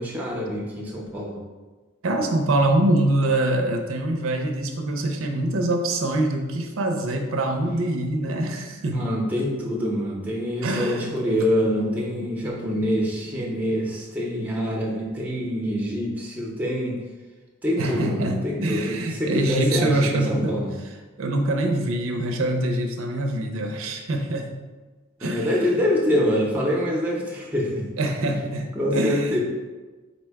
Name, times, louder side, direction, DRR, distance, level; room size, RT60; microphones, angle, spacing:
voice 1, 0.0-1.4 8.9-17.0 17.6-20.7 25.2-27.9 28.2-28.3 28.8-29.4, equal, 10° right, -3 dB, 0.6 m, -25 dB
voice 2, 2.0-9.0 10.6-13.3 14.6-14.8 17.8-20.7 21.2-24.5 25.2-25.5 28.0-29.4, right 1 dB, 90° right, 3 dB, 0.5 m, -25 dB
4.1 x 2.2 x 4.5 m, 1.3 s
head